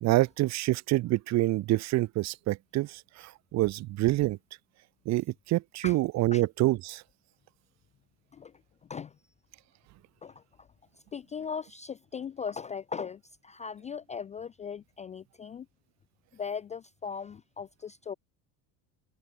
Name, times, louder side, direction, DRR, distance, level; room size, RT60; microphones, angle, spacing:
voice 1, 0.0-4.4 5.1-7.0, right 17 dB, 40° right, 0.5 m, -27 dB
voice 2, 8.8-9.2 10.2-10.7 11.1-15.7 16.3-18.1, left 6 dB, 20° left, 0.3 m, -39 dB
supercardioid pair, 125°, 43 cm